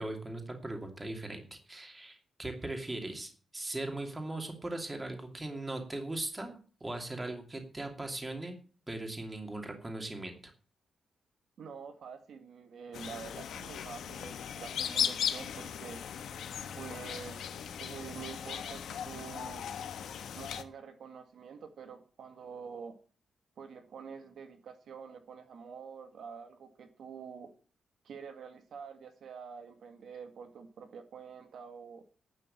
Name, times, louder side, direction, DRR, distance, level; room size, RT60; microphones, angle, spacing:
voice 1, 0.0-8.5 8.9-10.5, right 2 dB, 10° right, 4 dB, 2.6 m, -39 dB
voice 2, 11.6-16.0 16.8-17.5 17.8-19.7 20.4-23.0 23.6-27.5 28.0-32.0, right 6 dB, 60° right, 6 dB, 2.0 m, -47 dB
sound 1, 12.9-20.6, left 8 dB, 75° left, 1.4 m, -37 dB
10.5 x 9.1 x 8.6 m, 0.40 s
wide cardioid pair, 170°, 0 cm